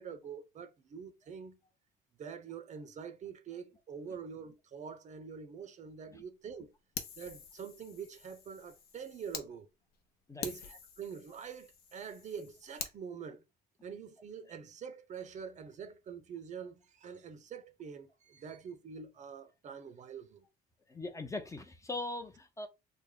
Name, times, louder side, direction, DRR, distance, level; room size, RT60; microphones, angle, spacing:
voice 1, 0.0-1.6 2.2-6.7 7.2-9.7 10.4-13.4 13.8-20.5, right 6 dB, 45° right, 0.6 m, -45 dB
Fire, 7.0-9.5 9.9-10.0 10.4-13.0, left 7 dB, 70° left, 0.7 m, -46 dB
voice 2, 20.9-22.7, left 2 dB, 20° left, 0.6 m, -40 dB
3.3 x 2.0 x 3.7 m
cardioid pair, 110°, 17 cm